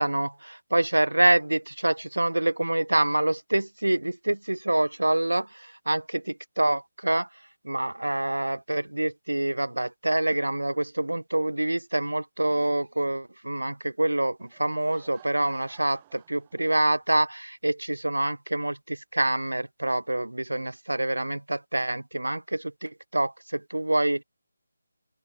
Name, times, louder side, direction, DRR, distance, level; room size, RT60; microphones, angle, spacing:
voice 1, 0.0-7.3 7.6-24.2, right 1 dB, 80° right, 0.4 m, -26 dB
Laughter / Crowd, 14.4-17.2, right 14 dB, 20° right, 6.7 m, -56 dB
open air
figure-of-eight pair, 155°, 0 cm